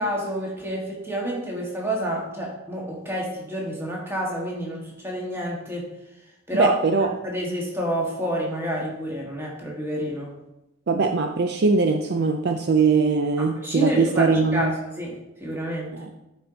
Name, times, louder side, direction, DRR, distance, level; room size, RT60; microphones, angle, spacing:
voice 1, 0.0-5.9 6.5-6.7 7.0-10.3 13.4-15.9, equal, 10° right, -3 dB, 1.6 m, -29 dB
voice 2, 6.5-7.1 10.9-14.8 15.9-16.1, right 4 dB, 50° right, 5 dB, 0.4 m, -21 dB
10.0 x 4.5 x 3.9 m, 0.94 s
head